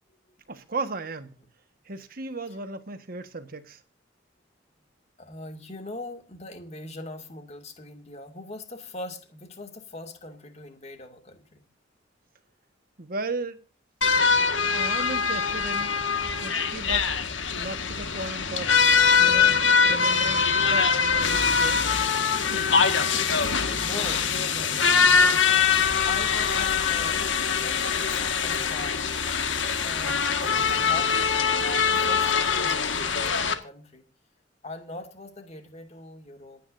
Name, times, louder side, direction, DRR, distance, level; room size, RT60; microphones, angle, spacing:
voice 1, 0.5-1.3 1.8-3.8 13.0-13.6 14.7-16.0 16.4-17.2 17.6-18.9 19.2-19.6 19.8-22.0 22.4-22.9 23.1-23.2 23.5-24.0, right 3 dB, 50° right, 1.5 m, -36 dB
voice 2, 5.2-11.6 23.4-27.3 27.6-29.1 29.8-34.1 34.6-36.6, left 2 dB, 35° left, 2.4 m, -41 dB
sound 1, 14.0-33.5, left 6 dB, 85° left, 1.8 m, -23 dB
27.5 x 9.6 x 2.7 m
head